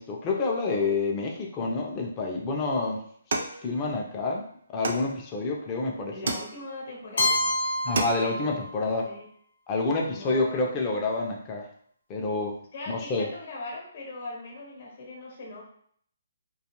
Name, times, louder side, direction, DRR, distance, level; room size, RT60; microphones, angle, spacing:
voice 1, 0.0-3.0 3.6-6.1 7.8-9.1 9.7-11.7 12.1-12.6 12.9-13.3, left 3 dB, 25° left, 0 dB, 0.5 m, -28 dB
sound 1, 3.3-4.3 4.8-5.6 6.3-7.0 7.4-7.5 7.8-8.5, right 2 dB, 65° right, 0.5 m, -32 dB
voice 2, 6.1-7.4 8.3-8.7 9.0-9.3 10.2-10.8 12.7-15.6, left 2 dB, 50° left, -1 dB, 1.0 m, -40 dB
Keyboard (musical), 7.2-9.1, left 1 dB, 75° left, 0.7 m, -28 dB
2.5 x 2.3 x 2.9 m, 0.62 s
hypercardioid pair, 155°, 0 cm